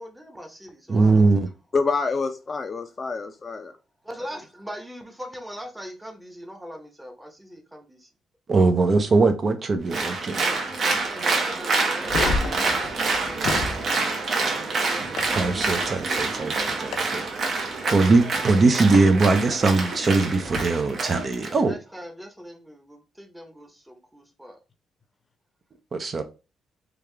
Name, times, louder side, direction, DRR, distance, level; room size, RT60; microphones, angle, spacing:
voice 1, 0.0-1.3 4.0-8.1 11.0-14.0 17.8-18.1 21.5-24.6, equal, 10° right, 0.8 m, -41 dB
voice 2, 0.9-1.5 8.5-10.4 15.3-17.3 17.9-21.7 25.9-26.2, right 3 dB, 40° right, 0.5 m, -21 dB
voice 3, 1.7-3.7, left 4 dB, 35° left, 0.4 m, -27 dB
Applause, 9.9-21.5, right 3 dB, 55° right, 0.9 m, -27 dB
sound 1, 12.0-13.8 15.2-15.3 16.9-17.0 18.9-19.0 20.4-20.6, left 4 dB, 75° left, 0.6 m, -29 dB
3.4 x 2.4 x 3.3 m
cardioid pair, 90°, 0 cm